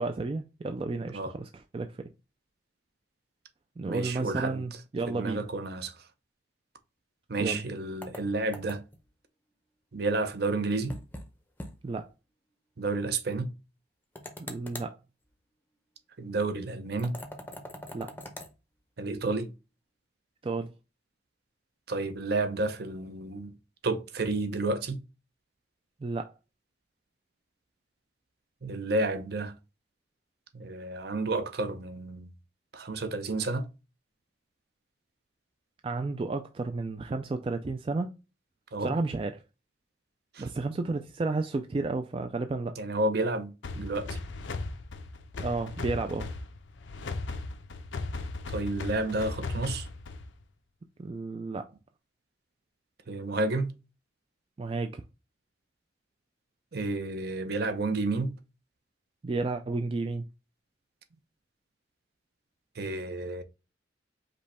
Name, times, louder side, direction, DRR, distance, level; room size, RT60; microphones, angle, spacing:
voice 1, 0.0-2.1 3.8-5.5 7.4-7.7 11.8-12.0 14.4-14.9 17.9-18.1 20.4-20.7 26.0-26.3 35.8-38.1 38.8-39.4 40.4-42.8 45.4-46.3 51.0-51.6 54.6-55.0 59.2-60.2, right 3 dB, 30° right, 0.3 m, -32 dB
voice 2, 3.8-4.6 5.1-5.9 7.3-8.8 9.9-11.0 12.8-13.5 16.2-17.2 19.0-19.5 21.9-23.5 23.8-25.0 28.6-29.5 30.5-32.3 32.7-33.7 38.7-38.9 40.3-40.5 42.8-44.2 48.5-49.9 53.1-53.7 56.7-58.3 62.8-63.4, right 2 dB, 55° right, 0.7 m, -31 dB
sound 1, 8.0-9.0 10.9-11.3 11.6-11.7 12.1-12.2 14.2-14.9 17.0-18.5, left 1 dB, 10° left, 0.6 m, -42 dB
sound 2, 43.6-50.4, left 3 dB, 80° left, 0.5 m, -37 dB
5.2 x 2.2 x 4.1 m
head